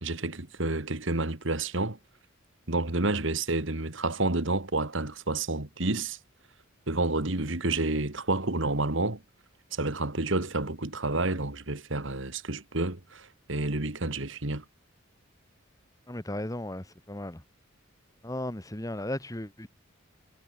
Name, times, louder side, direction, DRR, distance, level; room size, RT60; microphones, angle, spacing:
voice 1, 0.0-2.0 2.7-6.2 6.9-9.2 9.7-14.6, right 2 dB, 60° right, 2.1 m, -29 dB
voice 2, 16.1-17.4 18.2-19.7, left 1 dB, 15° left, 1.6 m, -35 dB
head